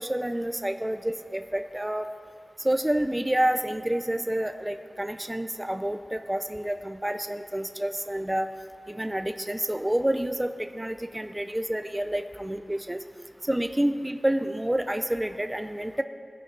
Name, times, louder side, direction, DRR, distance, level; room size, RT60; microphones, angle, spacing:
voice 1, 0.0-2.1 2.6-8.5 8.9-13.0 13.4-16.0, right 1 dB, 15° right, 7 dB, 0.5 m, -28 dB
20.5 x 10.5 x 3.4 m, 2.4 s
wide cardioid pair, 70°, 0 cm